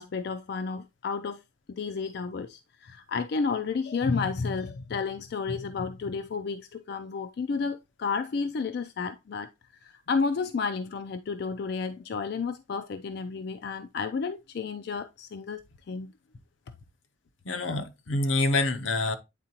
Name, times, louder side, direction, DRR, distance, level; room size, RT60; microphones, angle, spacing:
voice 1, 0.0-1.4 1.7-9.5 9.8-15.6 15.9-16.1, left 5 dB, 55° left, 0.4 m, -31 dB
voice 2, 17.4-19.1, left 2 dB, 85° left, 0.8 m, -26 dB
9.0 x 3.8 x 2.8 m
head